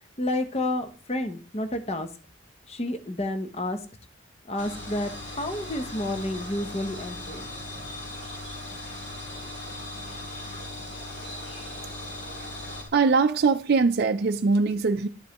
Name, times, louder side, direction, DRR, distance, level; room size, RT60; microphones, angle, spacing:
voice 1, 0.2-2.1 2.7-3.8 4.5-7.5, left 1 dB, 30° left, 0.7 m, -30 dB
sound 1, 4.6-12.9, left 1 dB, 55° left, 2.2 m, -38 dB
voice 2, 12.9-15.1, right 4 dB, 50° right, 0.4 m, -22 dB
11.5 x 5.3 x 3.0 m
head